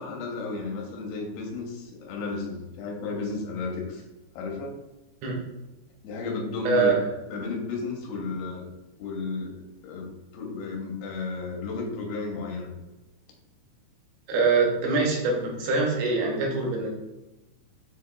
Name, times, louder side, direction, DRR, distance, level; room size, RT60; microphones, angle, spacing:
voice 1, 0.0-4.0 4.4-4.8 6.0-8.7 9.0-9.6 9.8-10.1 10.3-12.7, left 3 dB, 90° left, 0 dB, 2.6 m, -33 dB
voice 2, 14.3-16.9, right 4 dB, 80° right, -1 dB, 2.8 m, -24 dB
6.9 x 2.8 x 2.3 m, 1.0 s
omnidirectional pair, 4.5 m